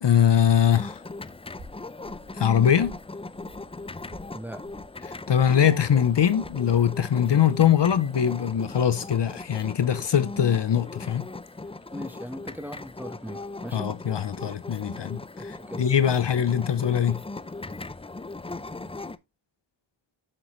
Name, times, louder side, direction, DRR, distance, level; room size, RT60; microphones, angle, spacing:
voice 1, 0.0-1.0 2.3-2.9 5.0-11.3 13.7-17.2, left 9 dB, 60° left, 0.7 m, -22 dB
sound 1, 0.7-19.2, left 2 dB, 15° left, 0.4 m, -39 dB
sound 2, 1.6-6.9, right 1 dB, 60° right, 3.2 m, -50 dB
voice 2, 11.9-13.9 15.6-15.9, equal, 5° right, 1.2 m, -38 dB
7.3 x 6.9 x 3.1 m
wide cardioid pair, 70°, 48 cm